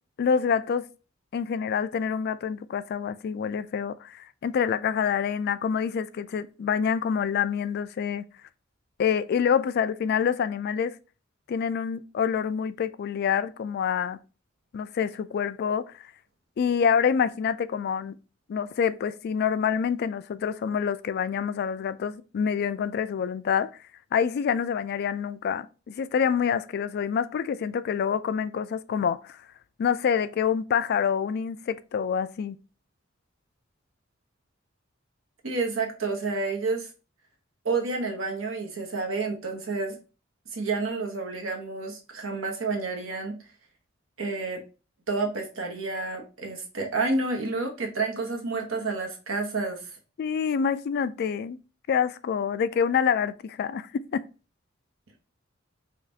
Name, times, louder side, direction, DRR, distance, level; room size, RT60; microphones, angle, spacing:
voice 1, 0.2-0.9 1.3-8.3 9.0-11.0 11.5-14.2 14.7-15.9 16.6-18.2 18.5-23.7 24.1-29.4 29.8-32.6 50.2-51.6 51.9-54.2, left 7 dB, 55° left, 0.3 m, -27 dB
voice 2, 35.4-36.9 37.6-40.0 40.5-43.4 44.2-44.6 45.1-49.9, right 3 dB, 85° right, 1.1 m, -29 dB
5.1 x 2.4 x 2.7 m
head